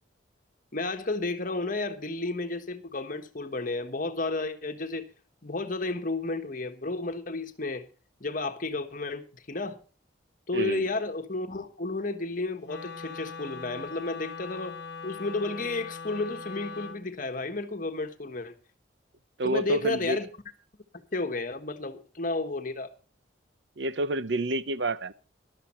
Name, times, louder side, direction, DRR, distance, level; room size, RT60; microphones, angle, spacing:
voice 1, 0.7-5.0 5.4-7.9 8.2-9.8 10.5-14.8 15.0-18.5 19.4-20.3 21.1-22.9, left 3 dB, 45° left, 1.4 m, -32 dB
voice 2, 10.5-10.9 19.4-20.2 23.8-25.1, right 2 dB, 65° right, 0.7 m, -28 dB
Wind instrument woodwind instrument, 12.6-17.0, left 5 dB, 60° left, 1.2 m, -41 dB
13.5 x 12.0 x 4.4 m
head